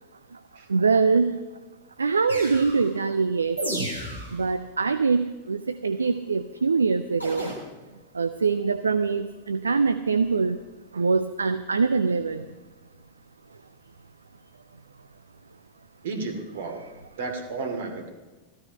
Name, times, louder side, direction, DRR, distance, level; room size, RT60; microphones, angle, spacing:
voice 1, 0.7-1.4 2.0-3.6 4.3-7.5 8.2-10.6 10.9-12.4, right 4 dB, 75° right, 11 dB, 0.5 m, -23 dB
sound 1, 2.3-2.9 3.6-4.4 7.2-7.5, right 1 dB, 85° left, 4.1 m, -32 dB
voice 2, 16.0-16.8 17.2-18.1, right 4 dB, 60° right, 6 dB, 2.5 m, -32 dB
15.0 x 13.5 x 5.7 m, 1.2 s
figure-of-eight pair, 90°, 0 cm